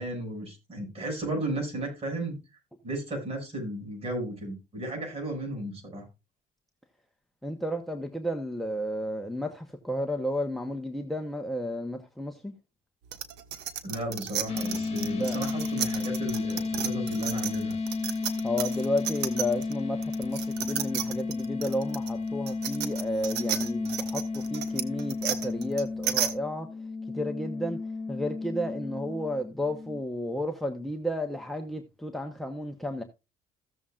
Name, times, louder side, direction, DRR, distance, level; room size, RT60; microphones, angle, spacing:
voice 1, 0.0-2.4 2.8-6.1 13.8-17.8, right 1 dB, 35° right, 6.3 m, -34 dB
voice 2, 7.4-12.5 15.1-15.4 18.4-26.7 27.1-27.8 28.1-33.0, left 1 dB, ahead, 1.0 m, -32 dB
sound 1, 13.1-19.7 20.0-26.3, right 10 dB, 85° right, 1.3 m, -33 dB
sound 2, 14.5-30.0, left 3 dB, 40° left, 1.8 m, -33 dB
15.5 x 7.2 x 2.4 m
cardioid pair, 110°, 17 cm